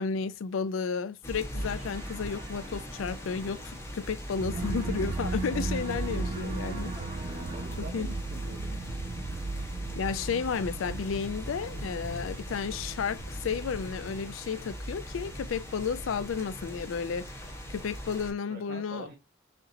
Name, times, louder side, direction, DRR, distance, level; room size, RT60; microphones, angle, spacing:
voice 1, 0.0-6.9 7.8-8.1 10.0-17.3 17.7-19.1, left 6 dB, 80° left, 0.4 m, -32 dB
sound 1, 1.2-18.3, equal, 15° left, 1.2 m, -40 dB
sound 2, 1.5-4.3 4.5-8.1, right 2 dB, 35° right, 1.5 m, -42 dB
sound 3, 4.4-14.7, right 3 dB, 70° right, 0.4 m, -37 dB
voice 2, 7.4-9.0 18.5-19.1, right 3 dB, 50° right, 0.8 m, -45 dB
6.5 x 2.9 x 2.6 m
head